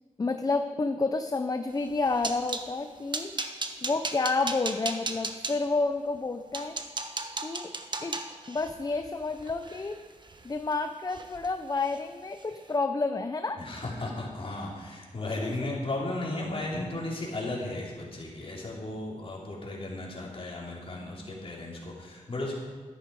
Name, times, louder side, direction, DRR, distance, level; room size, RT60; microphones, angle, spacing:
voice 1, 0.2-6.7 7.4-7.7 8.0-8.2 8.5-10.0 10.4-13.6 15.4-15.7, left 3 dB, 30° left, 7 dB, 0.6 m, -30 dB
sound 1, 1.8-2.7 3.1-5.5 6.1-6.2 6.5-10.7 11.1-11.5 11.8-12.0 12.4-12.5, right 3 dB, 35° right, 1.1 m, -36 dB
voice 2, 13.6-22.5, left 2 dB, 45° left, -3 dB, 3.5 m, -35 dB
13.0 x 11.0 x 4.8 m, 1.4 s
wide cardioid pair, 85°, 13 cm